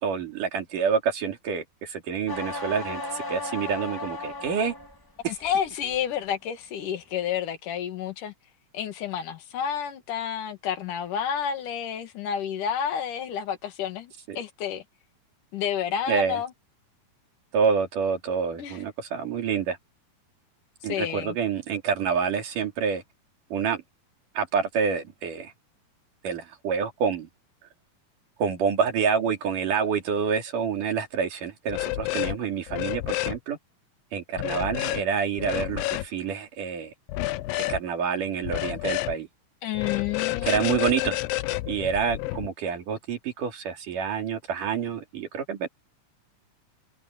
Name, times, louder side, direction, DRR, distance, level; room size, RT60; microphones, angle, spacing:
voice 1, 0.0-4.7 5.2-5.4 14.3-14.4 16.1-16.4 17.5-19.8 20.8-23.0 23.5-23.8 24.4-25.5 26.2-27.3 28.4-33.6 34.1-36.9 37.7-39.3 40.4-41.2 41.7-45.7, right 6 dB, 60° right, 4.3 m, -27 dB
sound 1, 2.3-5.0 5.4-5.9, left 2 dB, 30° left, 0.4 m, -35 dB
voice 2, 5.2-8.3 8.7-14.8 15.5-16.5 18.6-18.8 20.9-21.4 39.6-41.0, left 8 dB, 65° left, 3.3 m, -30 dB
sound 2, 31.7-32.4 32.7-33.4 34.4-35.0 35.4-36.1 37.1-37.8 38.4-39.2 39.7-42.5, left 17 dB, 85° left, 2.4 m, -29 dB
omnidirectional pair, 4.2 m